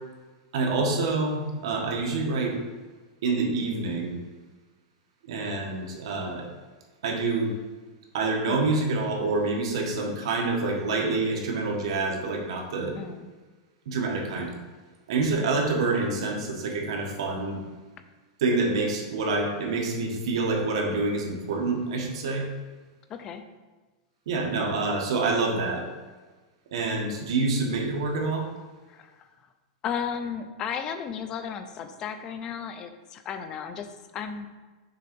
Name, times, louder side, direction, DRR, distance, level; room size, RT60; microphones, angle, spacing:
voice 1, 0.5-2.6 3.2-4.2 5.3-6.4 7.0-7.5 8.1-12.9 13.9-14.5 15.1-17.6 18.4-22.5 24.3-25.8 26.7-28.5, right 3 dB, 65° right, 1 dB, 1.5 m, -27 dB
voice 2, 13.0-13.3 23.1-23.4 28.9-29.1 29.8-33.9 34.1-34.5, left 7 dB, 20° left, 8 dB, 0.5 m, -34 dB
6.7 x 3.8 x 5.3 m, 1.3 s
supercardioid pair, 170°, 3 cm